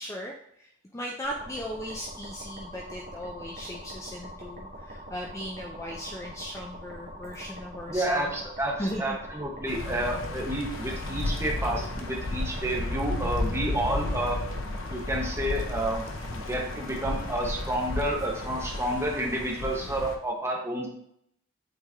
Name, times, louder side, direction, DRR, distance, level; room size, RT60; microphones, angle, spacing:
voice 1, 0.0-8.3 8.8-9.2, equal, 15° left, 0 dB, 0.5 m, -37 dB
sound 1, 1.2-19.4, equal, 45° right, 1.2 m, -43 dB
voice 2, 7.9-14.4 14.9-16.0 16.3-20.9, right 1 dB, 15° right, -1 dB, 1.2 m, -30 dB
sound 2, 9.7-20.1, left 2 dB, 75° left, 0.9 m, -33 dB
8.1 x 3.4 x 3.6 m, 0.73 s
head